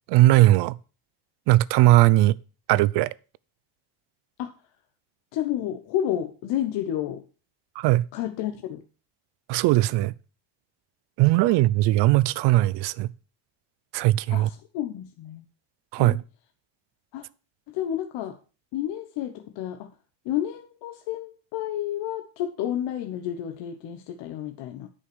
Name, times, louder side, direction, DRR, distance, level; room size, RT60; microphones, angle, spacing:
voice 1, 0.1-0.8 1.5-2.4 2.7-3.1 7.8-8.1 9.5-10.1 11.2-13.1 13.9-14.5 15.9-16.2, right 16 dB, 65° right, 0.6 m, -19 dB
voice 2, 5.3-7.2 8.1-8.8 11.5-11.6 14.3-15.4 16.0-16.2 17.1-17.3 17.7-18.4 18.7-19.9 20.2-24.9, left 11 dB, 70° left, 1.1 m, -30 dB
9.9 x 5.7 x 6.2 m
cardioid pair, 140°, 44 cm